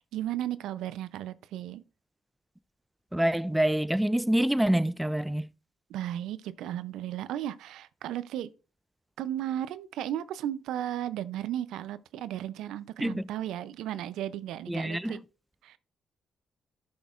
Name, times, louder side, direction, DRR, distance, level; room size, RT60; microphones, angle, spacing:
voice 1, 0.1-1.8 5.9-8.5 9.2-15.2 15.6-15.8, right 11 dB, 85° right, 0.4 m, -35 dB
voice 2, 3.1-5.5 13.0-13.2 14.7-15.2, right 1 dB, 5° right, 0.3 m, -26 dB
12.0 x 6.1 x 2.4 m
cardioid pair, 75°, 0 cm